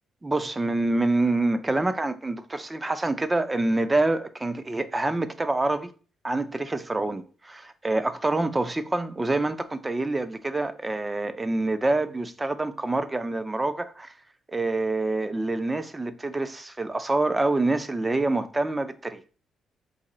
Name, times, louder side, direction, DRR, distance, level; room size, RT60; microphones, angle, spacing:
voice 1, 0.2-5.9 6.2-14.1 14.5-19.2, right 2 dB, 20° right, 0.5 m, -26 dB
4.1 x 2.9 x 3.9 m
cardioid pair, 90°, 0 cm